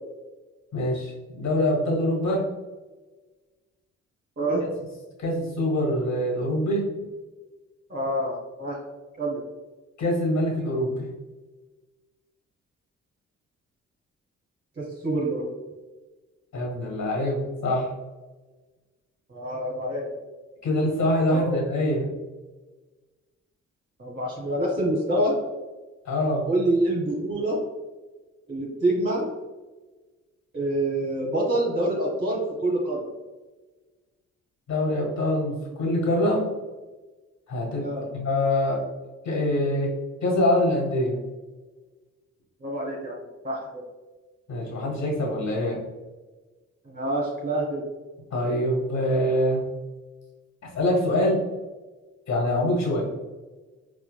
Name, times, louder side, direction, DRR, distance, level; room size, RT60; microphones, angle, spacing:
voice 1, 0.7-2.5 4.6-4.7 5.2-6.9 10.0-11.1 16.5-17.9 20.6-22.1 26.0-26.5 34.7-36.5 37.5-37.9 38.1-38.8 39.2-39.9 40.2-41.2 44.5-45.8 48.3-49.7 50.7-51.4 52.3-53.0, left 1 dB, 50° left, -1 dB, 1.5 m, -24 dB
voice 2, 7.9-8.8 9.2-9.4 14.8-15.5 19.3-20.1 21.3-21.6 24.0-25.4 26.5-27.6 28.5-29.3 30.5-33.0 37.8-38.1 42.6-43.2 43.4-43.8 46.8-47.8, right 1 dB, 30° right, -2 dB, 1.0 m, -26 dB
4.4 x 2.3 x 2.2 m, 1.2 s
hypercardioid pair, 40°, 36 cm